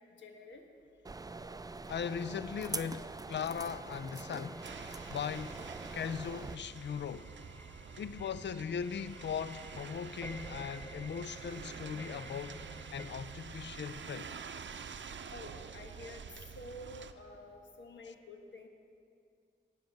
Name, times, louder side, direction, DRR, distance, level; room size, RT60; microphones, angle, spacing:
voice 1, 0.2-0.6 15.3-16.2 16.5-18.7, left 2 dB, 90° left, 1.3 m, -49 dB
sound 1, 1.0-6.6, right 3 dB, 20° right, 0.4 m, -44 dB
voice 2, 1.9-4.6 5.1-5.7 5.9-7.3 8.0-12.6 12.9-14.3, left 7 dB, 70° left, 0.4 m, -39 dB
sound 2, 3.3-13.1, equal, 10° left, 0.9 m, -53 dB
sound 3, 4.6-17.1, right 6 dB, 80° right, 0.6 m, -47 dB
13.0 x 9.3 x 7.2 m
wide cardioid pair, 85°, 19 cm